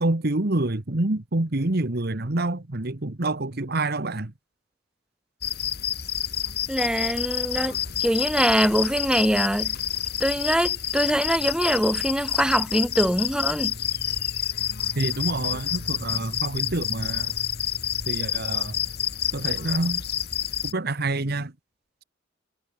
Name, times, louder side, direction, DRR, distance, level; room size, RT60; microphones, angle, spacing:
voice 1, 0.0-4.3 15.0-17.3 18.1-18.7 19.3-20.0 20.6-21.5, right 2 dB, 55° right, 1.5 m, -27 dB
sound 1, 5.4-20.7, left 10 dB, 55° left, 5.0 m, -29 dB
voice 2, 6.7-9.7 10.2-13.8, equal, 5° right, 3.3 m, -23 dB
head